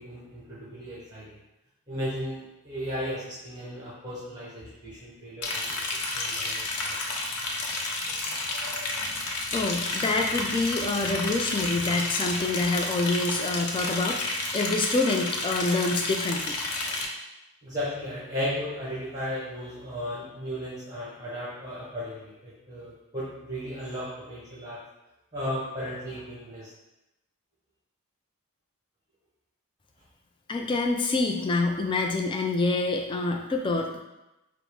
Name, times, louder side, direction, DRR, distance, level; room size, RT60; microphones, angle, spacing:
voice 1, 0.0-1.3 1.9-5.8 6.1-6.9 8.5-9.0 16.9-17.0 17.6-24.8 25.3-26.7, equal, 15° right, -8 dB, 0.9 m, -35 dB
Liquid, 5.4-17.0, left 2 dB, 85° left, 0.7 m, -31 dB
voice 2, 9.5-16.6 30.5-34.0, left 3 dB, 20° left, 2 dB, 0.3 m, -26 dB
5.1 x 2.0 x 4.7 m, 0.96 s
head